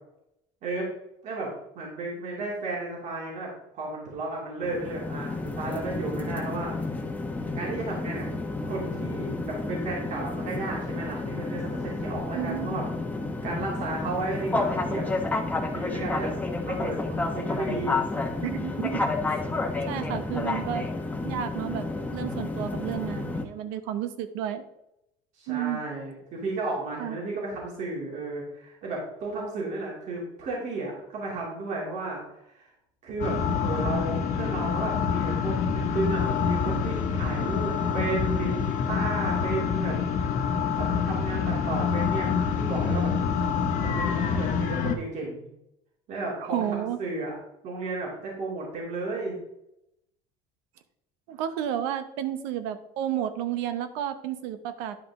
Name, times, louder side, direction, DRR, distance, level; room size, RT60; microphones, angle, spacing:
voice 1, 1.2-6.7 7.5-8.3 8.6-12.9 13.4-15.1 15.7-16.3 16.6-18.0 25.4-32.2 32.5-32.7 33.0-38.5 38.9-40.0 40.8-43.1 43.8-45.5 46.1-47.4 47.6-49.4, right 3 dB, 55° right, -3 dB, 2.8 m, -33 dB
sound 1, 4.6-23.5, left 3 dB, 10° left, 1.1 m, -31 dB
voice 2, 12.3-12.8 18.4-20.8 21.2-21.9 22.1-24.6 25.5-25.8 27.0-27.2 46.4-47.0 51.3-55.0, right 11 dB, 80° right, 11 dB, 0.8 m, -32 dB
sound 2, 33.2-45.0, left 6 dB, 60° left, 1.2 m, -26 dB
10.5 x 5.0 x 3.6 m, 0.82 s
supercardioid pair, 105°, 15 cm